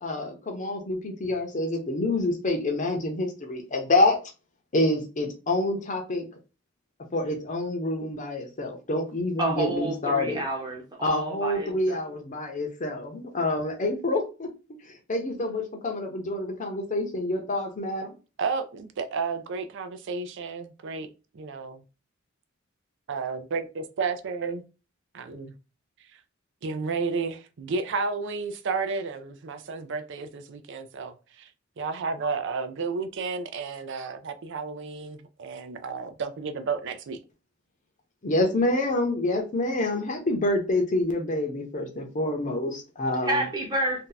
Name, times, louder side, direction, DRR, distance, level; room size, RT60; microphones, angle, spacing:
voice 1, 0.0-4.2 4.7-6.2 7.1-10.4 11.0-14.5 14.8-18.1 38.2-43.4, left 2 dB, 40° left, 0.7 m, -27 dB
voice 2, 9.4-12.0 43.2-44.1, right 1 dB, 20° right, 0.9 m, -29 dB
voice 3, 18.4-21.1 21.3-21.8 23.1-24.6 25.1-25.5 26.1-26.2 26.6-31.5 31.8-37.2, right 4 dB, 60° right, 0.4 m, -32 dB
2.7 x 2.2 x 3.9 m
head